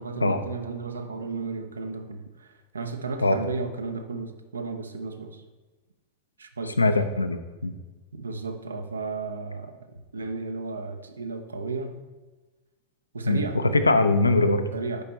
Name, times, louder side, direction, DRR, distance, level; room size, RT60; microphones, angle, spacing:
voice 1, 0.0-5.4 6.4-6.9 8.1-12.0 13.1-13.6 14.7-15.0, right 4 dB, 75° right, 7 dB, 0.6 m, -34 dB
voice 2, 6.8-7.7 13.3-13.4 13.7-14.7, left 2 dB, 80° left, 9 dB, 0.5 m, -21 dB
6.7 x 5.1 x 4.2 m, 1.2 s
figure-of-eight pair, 90°, 0 cm